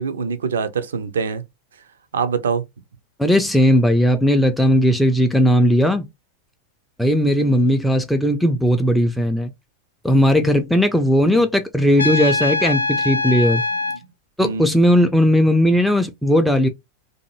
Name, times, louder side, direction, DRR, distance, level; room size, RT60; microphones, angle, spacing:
voice 1, 0.0-1.4 2.1-2.6 7.4-7.8 11.3-11.4 14.4-14.6, right 6 dB, 65° right, 0.4 m, -24 dB
voice 2, 3.2-6.1 7.0-9.5 10.0-13.6 14.4-16.7, equal, ahead, 0.4 m, -17 dB
Trumpet, 12.0-14.0, left 2 dB, 75° left, 0.3 m, -22 dB
2.7 x 2.5 x 2.7 m
figure-of-eight pair, 90°, 0 cm